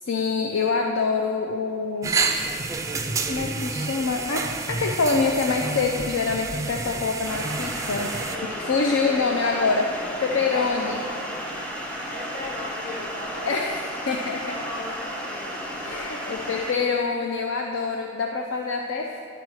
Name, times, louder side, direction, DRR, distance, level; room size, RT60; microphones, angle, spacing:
voice 1, 0.0-2.1 3.3-8.2 8.6-9.8 10.2-11.0 13.4-14.4 15.8-19.2, left 4 dB, 65° left, 2 dB, 0.5 m, -25 dB
sound 1, 2.0-8.4, right 4 dB, 15° right, 0.3 m, -29 dB
sound 2, 7.3-16.7, equal, 5° left, 0.7 m, -34 dB
voice 2, 8.2-11.6 12.1-14.2 14.4-15.9 16.4-17.0, left 1 dB, 45° left, -4 dB, 1.9 m, -38 dB
10.5 x 4.3 x 4.7 m, 2.7 s
head